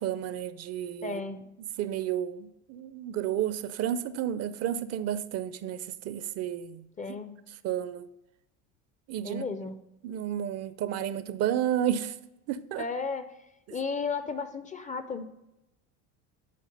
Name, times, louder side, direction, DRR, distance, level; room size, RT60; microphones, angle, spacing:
voice 1, 0.0-1.2 1.8-6.8 7.6-8.1 9.1-9.4 10.0-12.1 12.5-12.8, right 10 dB, 45° right, 0.4 m, -31 dB
voice 2, 1.0-1.4 7.0-7.3 9.2-9.8 12.8-13.4 13.7-15.2, left 4 dB, 20° left, 0.4 m, -34 dB
8.5 x 4.0 x 5.2 m
supercardioid pair, 100°, 36 cm